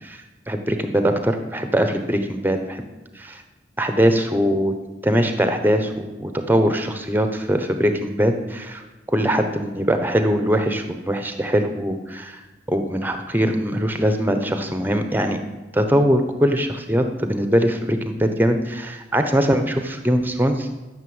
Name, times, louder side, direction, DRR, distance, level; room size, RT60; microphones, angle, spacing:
voice 1, 0.0-2.8 3.1-3.4 3.8-4.7 5.0-8.8 9.1-12.4 12.7-15.4 15.7-20.7, equal, 10° right, 7 dB, 1.0 m, -21 dB
13.0 x 6.9 x 7.9 m, 1.2 s
head